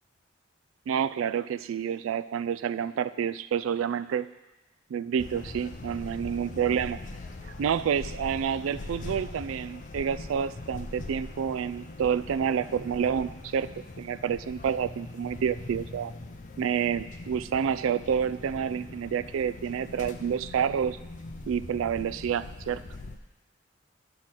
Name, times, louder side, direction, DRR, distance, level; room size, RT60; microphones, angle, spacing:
voice 1, 0.9-4.3 4.9-7.0 7.6-16.1 16.6-21.0 21.5-22.8, right 7 dB, 85° right, 13 dB, 0.3 m, -29 dB
sound 1, 5.2-23.2, left 2 dB, 40° left, 0.5 m, -42 dB
10.5 x 3.8 x 6.0 m, 1.0 s
head